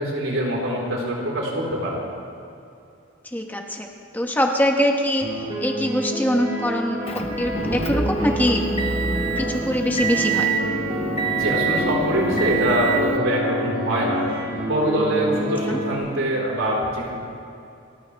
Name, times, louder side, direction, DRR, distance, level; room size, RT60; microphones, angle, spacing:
voice 1, 0.0-2.0 11.3-14.2 14.6-17.1, equal, 85° right, -3 dB, 4.3 m, -24 dB
voice 2, 3.2-3.9 4.1-5.3 5.6-7.0 7.4-8.6 9.4-10.5 15.7-15.8, equal, 10° left, 2 dB, 1.1 m, -23 dB
sound 1, 5.2-16.0, right 1 dB, 25° right, 4.5 m, -28 dB
Motor vehicle (road) / Engine, 7.1-13.2, right 4 dB, 30° left, 0.9 m, -26 dB
29.0 x 14.5 x 3.5 m, 2.6 s
head